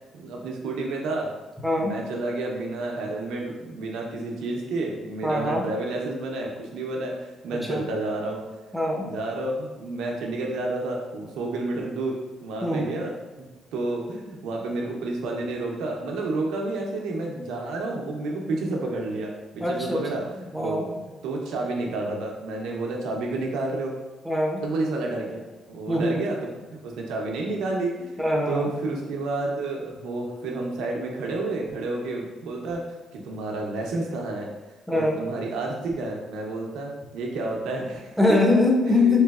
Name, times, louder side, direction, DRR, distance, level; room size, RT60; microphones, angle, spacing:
voice 1, 0.1-1.3 1.8-8.6 9.0-13.1 13.7-20.9 21.2-23.9 24.6-26.5 26.8-32.8 33.1-34.5 34.9-38.4 38.9-39.2, right 2 dB, 90° right, 0 dB, 0.6 m, -30 dB
voice 2, 1.6-2.0 5.2-5.6 7.5-7.9 8.7-9.1 12.6-12.9 19.6-20.0 20.5-20.9 24.2-24.6 25.9-26.2 28.2-28.7 34.9-35.2 38.2-39.2, left 2 dB, ahead, -1 dB, 0.7 m, -22 dB
3.3 x 3.0 x 2.3 m, 1.2 s
cardioid pair, 90°, 0 cm